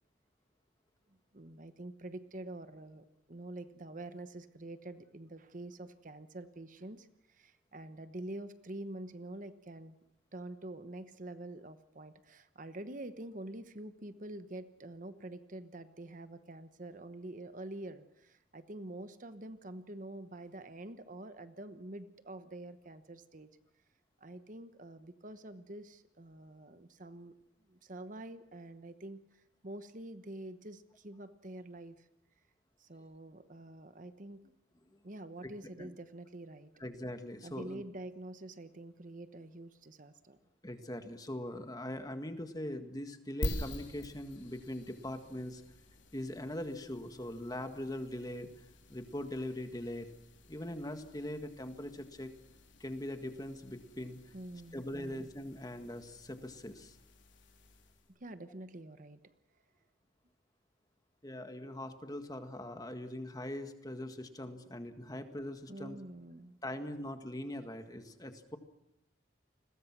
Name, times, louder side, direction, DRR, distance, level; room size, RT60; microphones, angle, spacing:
voice 1, 1.1-10.0 10.3-23.5 24.2-27.3 27.7-32.1 32.8-34.4 35.0-36.7 37.4-40.4 54.3-55.3 58.1-59.3 65.7-66.6, right 1 dB, 45° right, 11 dB, 1.1 m, -47 dB
voice 2, 36.8-37.8 40.6-45.6 46.1-48.5 48.9-50.1 50.5-52.3 52.8-54.2 54.7-57.0 61.2-66.0 66.6-68.6, left 1 dB, 20° left, 7 dB, 1.8 m, -41 dB
sound 1, 43.4-58.2, left 1 dB, 80° left, 3.7 m, -47 dB
29.5 x 21.5 x 6.1 m, 0.84 s
head